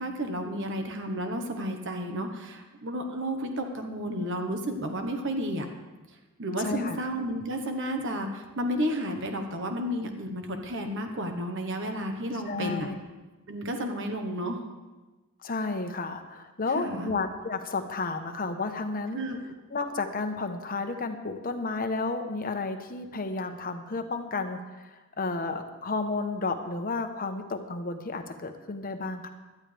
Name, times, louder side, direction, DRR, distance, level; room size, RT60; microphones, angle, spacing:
voice 1, 0.0-5.7 6.4-12.9 13.5-14.6 16.7-17.2 19.1-19.5, equal, 60° right, 5 dB, 1.3 m, -32 dB
voice 2, 6.6-7.0 12.5-13.0 15.4-19.3 19.7-29.3, left 3 dB, 40° left, 6 dB, 1.0 m, -32 dB
18.0 x 12.0 x 3.5 m, 1.2 s
head